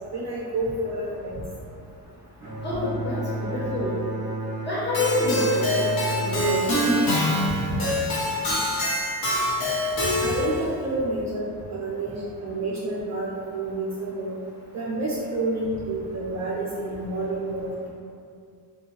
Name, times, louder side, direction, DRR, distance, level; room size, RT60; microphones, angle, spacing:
voice 1, 0.1-1.4 10.2-12.1 12.4-14.3 14.7-17.9, right 2 dB, 45° right, -5 dB, 0.4 m, -29 dB
Bowed string instrument, 2.4-7.8, right 2 dB, 20° right, 0.9 m, -32 dB
voice 2, 2.6-4.0 4.6-7.0 7.7-7.8, left 2 dB, 25° left, -10 dB, 1.1 m, -28 dB
Keyboard (musical), 4.9-10.6, left 1 dB, 55° left, 0.9 m, -25 dB
2.6 x 2.3 x 2.9 m, 2.4 s
cardioid pair, 125°, 41 cm